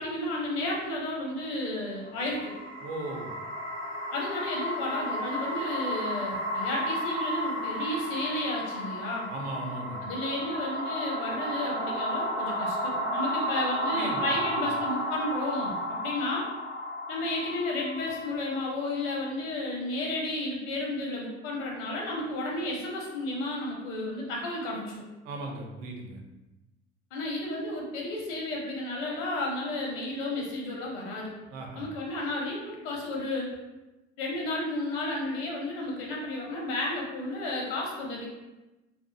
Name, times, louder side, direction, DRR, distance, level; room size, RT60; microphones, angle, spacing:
voice 1, 0.0-2.6 4.1-9.3 10.0-15.7 16.0-16.4 17.1-25.0 27.1-31.3 31.8-33.5 34.2-38.3, left 2 dB, 55° left, -2 dB, 0.9 m, -32 dB
sound 1, 2.1-19.2, equal, 90° right, 0.7 m, -33 dB
voice 2, 2.8-3.3 9.3-10.0 13.9-14.6 25.2-26.2 31.5-31.8, right 2 dB, 50° right, 1 dB, 0.7 m, -37 dB
2.6 x 2.5 x 2.7 m, 1.0 s
figure-of-eight pair, 65°, 35 cm